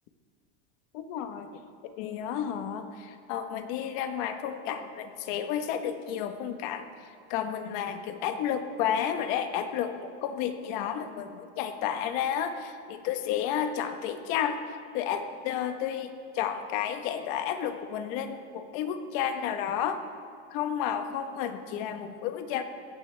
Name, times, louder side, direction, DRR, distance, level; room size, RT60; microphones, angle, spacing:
voice 1, 0.9-1.5 2.0-2.8 3.3-6.8 7.3-9.9 10.2-14.6 14.9-16.1 16.4-20.0 20.5-22.6, left 9 dB, 55° left, 7 dB, 1.3 m, -31 dB
21.0 x 17.0 x 3.5 m, 2.2 s
supercardioid pair, 160°, 32 cm